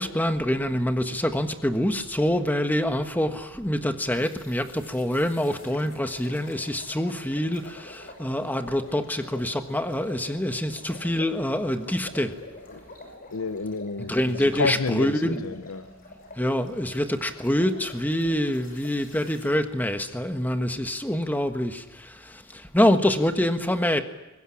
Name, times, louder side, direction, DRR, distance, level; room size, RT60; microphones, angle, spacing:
voice 1, 0.0-12.3 14.1-15.4 16.4-24.0, left 1 dB, 10° left, 1.4 m, -26 dB
sound 1, 4.1-19.5, left 2 dB, 45° left, 6.1 m, -47 dB
voice 2, 13.3-15.9, left 4 dB, 80° left, 0.8 m, -30 dB
22.5 x 20.0 x 10.0 m
head